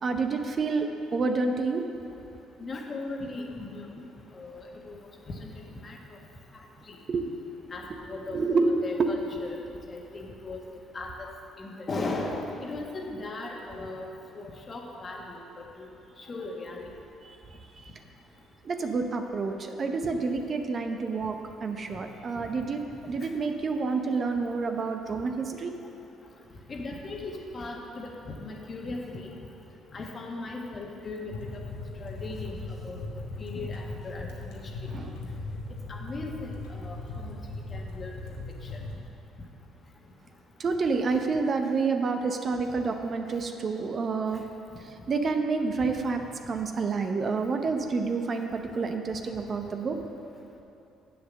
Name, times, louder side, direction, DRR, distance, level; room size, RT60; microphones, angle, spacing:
voice 1, 0.0-1.8 7.1-7.4 8.3-9.1 17.2-17.4 17.8-17.9 18.6-21.4 21.6-25.7 34.9-35.1 40.6-44.4 45.1-46.2 46.5-50.0, right 4 dB, 45° right, 5 dB, 0.8 m, -28 dB
voice 2, 2.6-4.1 4.3-5.0 5.3-5.5 5.8-6.0 6.9-7.0 7.7-9.6 9.9-10.6 10.9-11.3 11.6-14.1 14.3-15.4 15.8-15.9 16.2-16.9 22.4-22.5 26.7-29.4 29.9-31.3 32.0-32.6 32.8-33.0 33.4-34.9 35.9-37.4 37.7-38.1, left 2 dB, 40° left, 0 dB, 1.5 m, -37 dB
sound 1, 31.3-39.0, left 2 dB, 80° left, 1.2 m, -38 dB
7.7 x 6.9 x 6.4 m, 2.7 s
hypercardioid pair, 55°, 0 cm